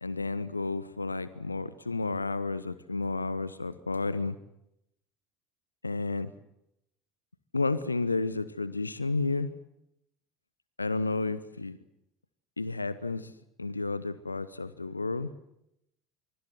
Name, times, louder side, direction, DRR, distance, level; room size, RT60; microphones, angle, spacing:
voice 1, 0.0-4.4 5.8-6.3 7.5-9.5 10.8-11.8 12.6-13.3 13.6-15.3, left 3 dB, 85° left, 17 dB, 0.9 m, -31 dB
24.5 x 24.0 x 8.0 m, 0.81 s
figure-of-eight pair, 65°, 0 cm